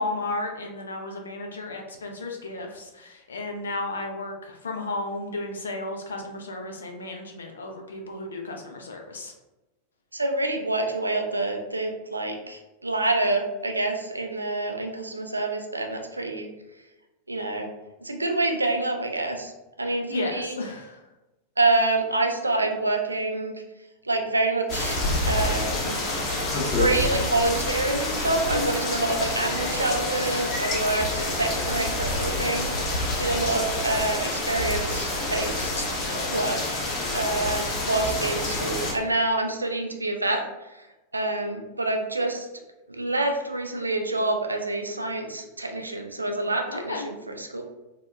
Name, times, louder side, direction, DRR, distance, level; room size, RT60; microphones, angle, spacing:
voice 1, 0.0-9.3 20.1-21.0 28.5-28.7 46.7-47.1, left 2 dB, 70° left, 2 dB, 0.4 m, -33 dB
voice 2, 10.1-16.5 17.3-17.7 18.0-19.5 19.8-20.6 21.6-23.5 24.0-25.0 25.2-26.0 26.5-35.9 36.3-36.8 37.1-40.4 40.8-40.9 41.1-42.5 42.9-47.6, right 2 dB, 80° right, 4 dB, 0.3 m, -27 dB
sound 1, 24.7-38.9, left 2 dB, 35° left, 0.7 m, -27 dB
2.7 x 2.1 x 2.2 m, 1.0 s
figure-of-eight pair, 90°, 0 cm